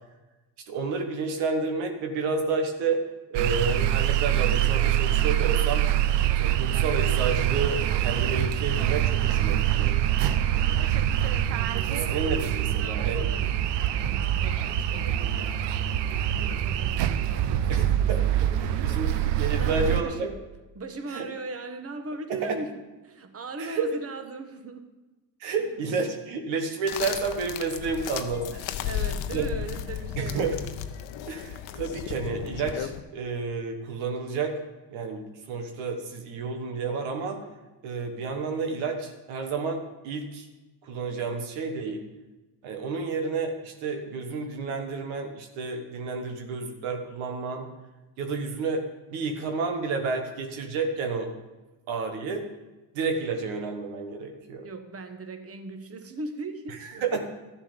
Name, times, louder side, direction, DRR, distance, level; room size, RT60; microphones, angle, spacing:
voice 1, 0.7-3.0 3.3-5.8 6.2-10.0 11.9-13.3 17.7-18.2 18.8-20.3 21.1-21.3 22.3-22.6 23.6-23.9 25.4-28.7 29.3-29.5 30.2-30.6 31.3-34.5 34.9-37.4 37.8-40.5 40.8-42.1 42.6-47.7 48.2-48.8 49.1-51.3 51.9-52.5 52.9-54.7 57.0-57.2, right 4 dB, 85° right, 4 dB, 1.4 m, -30 dB
sound 1, 3.3-20.0, right 11 dB, 70° right, 0.7 m, -25 dB
voice 2, 10.5-10.9 11.6-12.2 12.7-13.5 14.1-15.9 16.3-20.4 20.7-24.9 28.5-30.5 54.6-57.0, right 3 dB, 30° right, 7 dB, 1.3 m, -39 dB
sound 2, 26.9-33.0, left 10 dB, 80° left, 0.8 m, -34 dB
12.5 x 7.2 x 5.2 m, 1.1 s
supercardioid pair, 70°, 45 cm